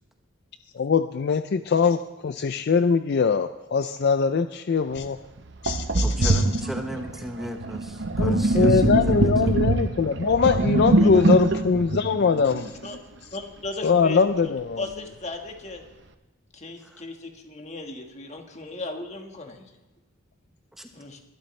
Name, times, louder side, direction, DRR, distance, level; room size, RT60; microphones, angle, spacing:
voice 1, 0.8-5.2 5.6-6.4 8.2-12.8 13.8-14.8, left 5 dB, 50° left, 10 dB, 0.4 m, -22 dB
Sink (filling or washing), 5.0-5.1 5.7-13.0, right 2 dB, 55° right, 0.7 m, -23 dB
voice 2, 6.0-9.6 16.8-17.0 20.8-20.9, equal, ahead, 4 dB, 0.9 m, -36 dB
voice 3, 11.0-11.4 12.8-13.0 13.3-15.8 16.5-19.7 20.9-21.2, left 2 dB, 30° left, 3 dB, 1.5 m, -37 dB
20.5 x 12.5 x 3.2 m, 1.1 s
head